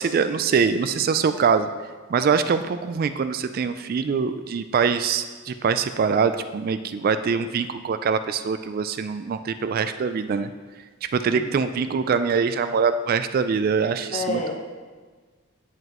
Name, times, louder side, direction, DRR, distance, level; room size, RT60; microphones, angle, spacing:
voice 1, 0.0-1.7 2.1-10.5 11.1-14.5, right 5 dB, 45° right, 10 dB, 0.3 m, -23 dB
voice 2, 14.1-14.5, left 2 dB, 35° left, 2 dB, 1.1 m, -28 dB
9.4 x 7.8 x 3.0 m, 1.4 s
head